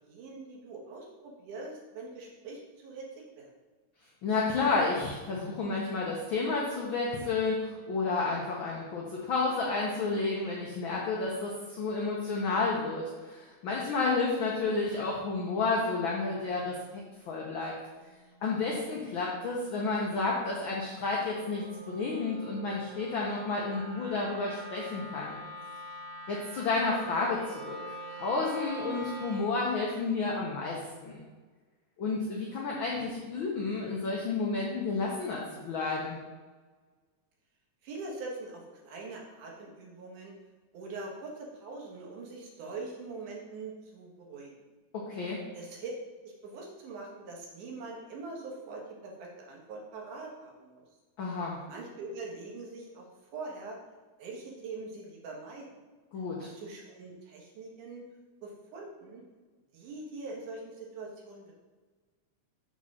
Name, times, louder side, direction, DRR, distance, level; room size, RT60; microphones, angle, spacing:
voice 1, 0.1-3.1 3.4-3.5 35.5-35.6 37.8-40.3 40.7-44.7 45.5-45.9 46.2-50.8 51.7-53.1 53.3-53.8 54.2-55.8 56.4-58.1 58.4-59.2 59.7-61.5, right 3 dB, 90° right, -1 dB, 2.8 m, -43 dB
voice 2, 4.2-17.0 17.3-17.7 18.4-25.4 26.3-31.2 32.0-36.2 45.1-45.4 51.2-51.6 56.1-56.5, left 3 dB, 80° left, -3 dB, 1.1 m, -31 dB
Wind instrument woodwind instrument, 18.0-29.6, right 1 dB, 70° right, 2.1 m, -45 dB
6.1 x 4.2 x 6.1 m, 1.4 s
omnidirectional pair, 3.5 m